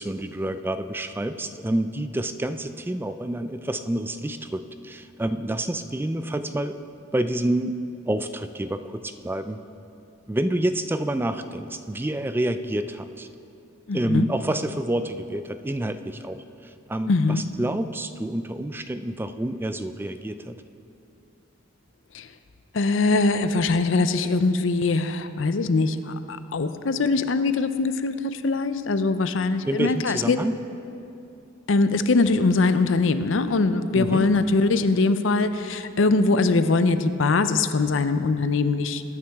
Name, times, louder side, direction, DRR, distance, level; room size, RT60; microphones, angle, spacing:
voice 1, 0.0-6.8 7.1-7.8 8.1-9.6 10.3-13.3 13.9-20.6 29.7-30.6 33.9-34.3, right 1 dB, 10° right, 10 dB, 0.3 m, -28 dB
voice 2, 13.9-14.3 17.1-17.4 22.1-22.3 22.7-30.4 31.7-39.0, left 3 dB, 70° left, 11 dB, 0.6 m, -22 dB
20.5 x 9.4 x 3.6 m, 2.7 s
head